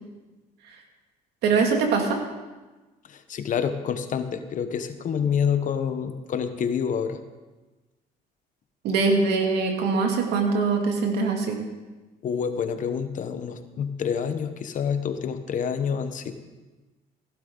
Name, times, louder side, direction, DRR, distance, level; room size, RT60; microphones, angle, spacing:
voice 1, 1.4-2.2 8.8-11.6, right 4 dB, 80° right, 2 dB, 2.3 m, -23 dB
voice 2, 3.1-7.2 12.2-16.3, left 7 dB, 50° left, 9 dB, 1.0 m, -27 dB
15.5 x 12.0 x 3.9 m, 1.2 s
cardioid pair, 110°, 17 cm